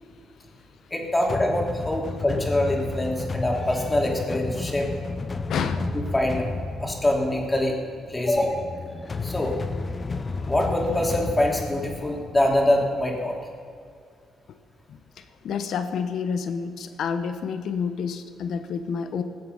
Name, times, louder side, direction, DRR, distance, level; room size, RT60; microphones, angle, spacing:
voice 1, 0.9-4.9 5.9-6.4 6.8-7.8 8.1-8.6 9.2-9.6 10.4-13.4, left 1 dB, 15° left, -1 dB, 3.0 m, -24 dB
sound 1, 1.3-13.2, left 3 dB, 35° left, 0.7 m, -33 dB
voice 2, 5.5-5.9 8.2-8.3 14.5-14.6 14.9-19.2, left 6 dB, 70° left, 9 dB, 1.1 m, -29 dB
20.5 x 7.7 x 5.6 m, 2.2 s
cardioid pair, 90°, 0 cm